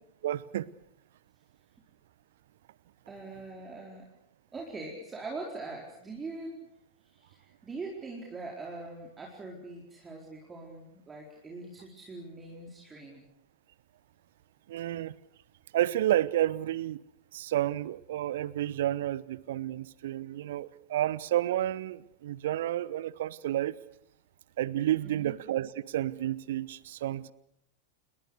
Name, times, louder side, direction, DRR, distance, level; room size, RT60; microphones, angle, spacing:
voice 1, 0.2-0.7 14.7-15.1 15.7-17.0 17.3-23.7 24.6-27.3, right 13 dB, 55° right, 21 dB, 0.9 m, -30 dB
voice 2, 3.1-4.1 4.5-6.7 7.0-13.2 25.0-25.4, right 3 dB, 15° right, -1 dB, 4.5 m, -42 dB
29.0 x 21.5 x 6.7 m, 0.76 s
figure-of-eight pair, 90°, 0 cm